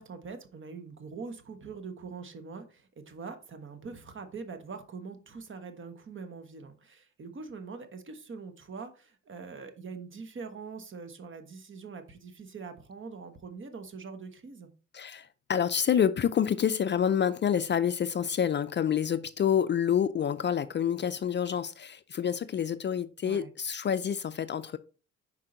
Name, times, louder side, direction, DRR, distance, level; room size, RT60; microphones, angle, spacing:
voice 1, 0.0-14.7 23.2-23.5, right 4 dB, 40° right, 1.2 m, -43 dB
voice 2, 14.9-24.8, left 8 dB, 40° left, 0.4 m, -28 dB
5.7 x 4.6 x 3.8 m
cardioid pair, 90°, 30 cm